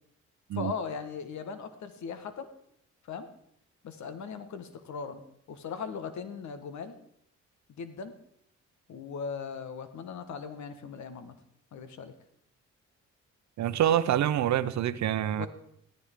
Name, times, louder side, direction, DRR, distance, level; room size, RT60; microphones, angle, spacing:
voice 1, 0.5-2.5 3.0-3.3 3.8-5.2 5.5-6.9 7.7-8.1 8.9-11.3 11.7-12.1 15.4-15.5, left 6 dB, 65° left, 9 dB, 1.6 m, -38 dB
voice 2, 13.6-15.5, right 11 dB, 65° right, 14 dB, 0.8 m, -26 dB
16.0 x 13.5 x 3.7 m, 0.73 s
cardioid pair, 90°, 30 cm